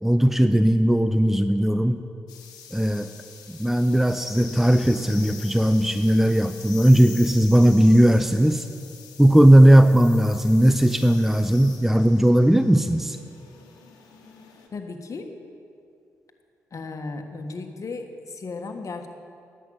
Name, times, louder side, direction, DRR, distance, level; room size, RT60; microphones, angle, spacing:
voice 1, 0.0-2.0 2.7-3.1 3.5-8.7 9.2-13.2, right 1 dB, 5° right, 10 dB, 0.6 m, -17 dB
sound 1, 2.3-14.7, left 7 dB, 85° left, 1.4 m, -45 dB
voice 2, 14.7-15.3 16.7-19.1, left 3 dB, 50° left, 5 dB, 1.5 m, -35 dB
11.0 x 8.3 x 9.0 m, 2.5 s
supercardioid pair, 45°, 7 cm